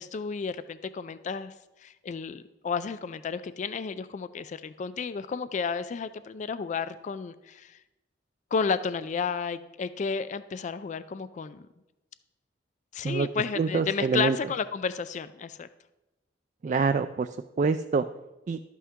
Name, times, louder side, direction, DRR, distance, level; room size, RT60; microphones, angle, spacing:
voice 1, 0.0-1.5 1.8-7.8 8.5-11.6 12.9-15.7, left 5 dB, 40° left, 14 dB, 0.3 m, -32 dB
voice 2, 13.6-14.4 16.6-17.3 17.6-18.0 18.5-18.6, right 4 dB, 45° right, 9 dB, 0.3 m, -25 dB
12.0 x 8.4 x 3.6 m, 1.0 s
head